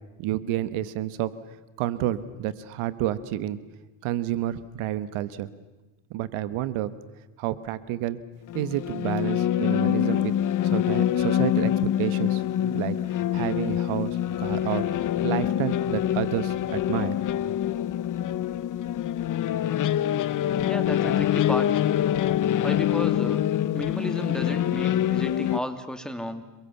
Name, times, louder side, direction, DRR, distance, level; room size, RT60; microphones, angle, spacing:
voice 1, 0.2-1.3 1.8-3.6 4.0-5.5 6.1-6.9 7.4-8.2 8.5-10.3 10.6-13.0 13.3-14.9 15.2-17.2 17.4-17.5, right 13 dB, 75° right, 14 dB, 1.4 m, -29 dB
sound 1, 8.5-25.6, left 11 dB, 40° left, 0.7 m, -25 dB
voice 2, 20.6-21.7 22.6-23.4 23.7-26.4, equal, ahead, 7 dB, 2.3 m, -33 dB
28.5 x 22.0 x 7.1 m, 1.2 s
cardioid pair, 105°, 50 cm